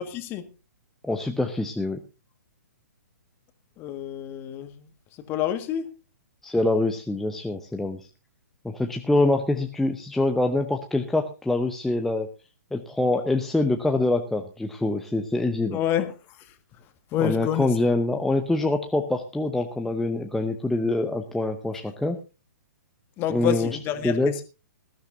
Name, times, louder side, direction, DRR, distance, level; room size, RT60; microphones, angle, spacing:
voice 1, 0.1-0.4 3.8-4.7 5.3-5.8 15.7-16.1 17.1-17.7 23.2-24.4, left 11 dB, 25° left, 1.7 m, -27 dB
voice 2, 1.0-2.0 6.4-8.0 8.6-12.3 12.7-15.8 17.2-22.2 23.3-23.8 24.0-24.4, left 2 dB, 5° left, 0.8 m, -25 dB
20.5 x 13.0 x 2.6 m
figure-of-eight pair, 120°, 9 cm